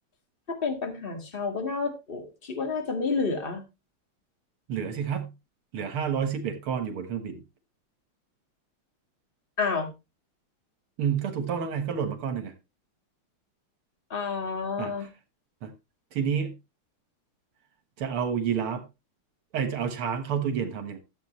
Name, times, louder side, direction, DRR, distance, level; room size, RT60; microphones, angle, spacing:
voice 1, 0.5-3.6 9.6-9.9 14.1-15.1, left 4 dB, 25° left, 2.0 m, -30 dB
voice 2, 4.7-5.3 5.7-7.4 11.0-12.5 14.8-15.1 15.6-15.7 16.1-16.5 18.0-18.8 19.5-21.0, right 7 dB, 80° right, 2.3 m, -29 dB
13.0 x 7.9 x 3.1 m
omnidirectional pair, 2.4 m